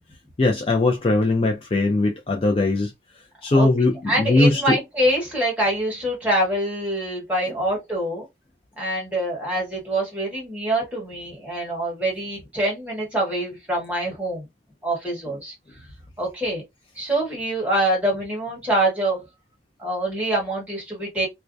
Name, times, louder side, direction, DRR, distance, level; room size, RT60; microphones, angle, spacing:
voice 1, 0.4-2.9 3.4-4.8, left 2 dB, 30° left, 0.4 m, -20 dB
voice 2, 4.1-8.3 8.8-14.5 14.8-15.5 16.2-16.6 17.0-19.2 19.8-21.3, right 1 dB, 10° right, 1.2 m, -25 dB
2.3 x 2.1 x 2.5 m
head